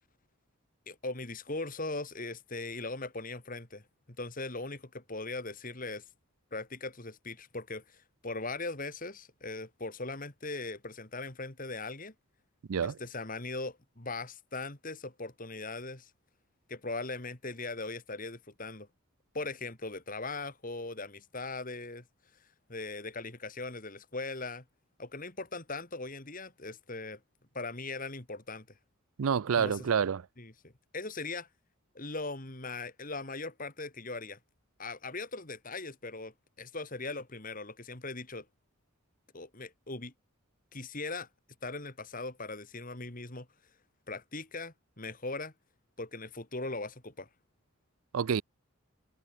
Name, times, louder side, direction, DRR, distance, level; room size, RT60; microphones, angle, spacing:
voice 1, 0.9-3.8 4.1-6.0 6.5-12.1 12.8-16.1 16.7-18.9 19.3-22.0 22.7-24.6 25.0-27.2 27.5-28.7 29.5-29.8 30.4-31.5 31.9-34.4 34.8-38.5 39.3-40.1 40.7-41.3 41.6-43.5 44.1-45.5 46.0-47.3, left 3 dB, 40° left, 2.7 m, -39 dB
voice 2, 29.2-30.3 48.1-48.4, right 7 dB, 70° right, 0.4 m, -28 dB
head